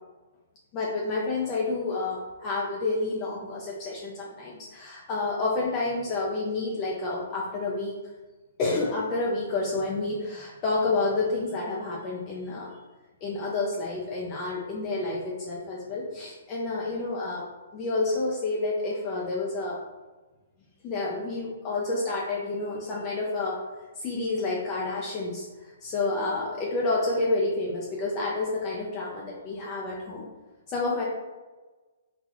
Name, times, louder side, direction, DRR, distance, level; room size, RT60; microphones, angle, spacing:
voice 1, 0.7-8.0 8.6-12.8 13.2-17.4 17.7-19.8 20.8-23.6 24.0-30.3 30.7-31.0, left 3 dB, 30° left, -4 dB, 0.5 m, -29 dB
3.9 x 2.3 x 3.0 m, 1.2 s
hypercardioid pair, 145°, 0 cm